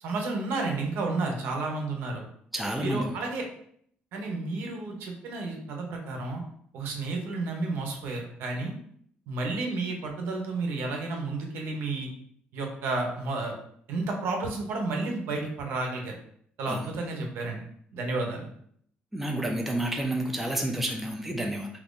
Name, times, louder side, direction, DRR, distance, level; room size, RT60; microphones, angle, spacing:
voice 1, 0.0-2.2 2.8-3.4 4.1-6.4 6.7-8.7 9.3-12.1 12.5-13.5 13.9-16.2 16.6-17.6 17.9-18.5, right 3 dB, 80° right, 2 dB, 0.8 m, -31 dB
voice 2, 2.5-3.2 16.7-16.9 19.1-21.7, right 1 dB, 5° right, 1 dB, 0.4 m, -30 dB
2.8 x 2.5 x 3.6 m, 0.65 s
cardioid pair, 160°, 4 cm